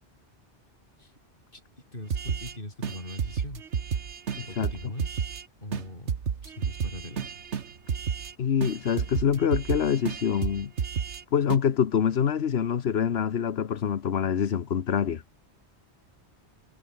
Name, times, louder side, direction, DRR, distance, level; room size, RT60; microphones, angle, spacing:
voice 1, 1.9-3.9 4.5-5.3 5.6-6.2 6.4-7.3 8.0-8.1, left 1 dB, 50° left, 6.6 m, -41 dB
sound 1, 2.1-2.5 2.8-5.4 5.7-5.8 6.1-8.3 8.6-11.2 11.5-11.6, right 7 dB, 85° right, 1.5 m, -31 dB
voice 2, 4.3-4.7 8.4-10.7 11.3-15.2, left 8 dB, 65° left, 1.2 m, -25 dB
omnidirectional pair, 1.1 m